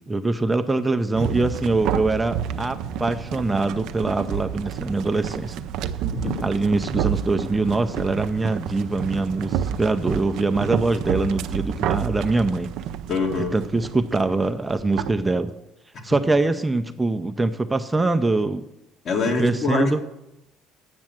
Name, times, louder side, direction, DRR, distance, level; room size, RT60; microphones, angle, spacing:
voice 1, 0.1-5.6 6.2-12.7 13.4-15.5 16.0-18.6 19.4-20.0, right 3 dB, 15° right, 8 dB, 0.5 m, -23 dB
sound 1, 1.1-15.2, right 9 dB, 70° right, 0.5 m, -29 dB
voice 2, 6.1-6.4 13.1-13.5 19.0-20.0, left 4 dB, 50° left, 2 dB, 2.0 m, -24 dB
8.5 x 6.2 x 7.5 m, 0.91 s
supercardioid pair, 75°, 0 cm